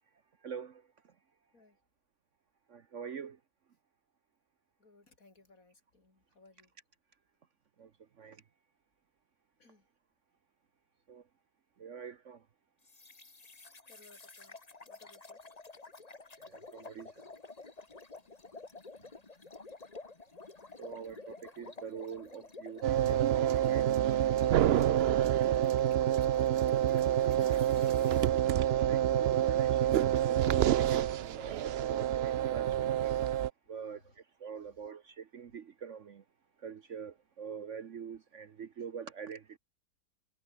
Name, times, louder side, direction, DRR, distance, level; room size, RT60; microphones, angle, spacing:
voice 1, 0.4-0.9 2.7-3.4 7.8-7.9 8.2-8.4 11.1-11.2 11.8-12.4 16.4-17.1 20.8-25.5 27.5-28.2 28.8-33.2 33.7-36.2 36.6-39.6, right 7 dB, 50° right, 1.1 m, -45 dB
voice 2, 4.8-6.7 9.6-9.9 13.9-14.6 14.8-15.4 18.2-18.4 33.7-34.1 34.5-34.6, left 3 dB, 55° left, 4.5 m, -62 dB
sound 1, 12.9-28.3, left 3 dB, 25° left, 1.6 m, -51 dB
sound 2, 22.8-33.5, right 11 dB, 80° right, 0.5 m, -27 dB
omnidirectional pair, 1.7 m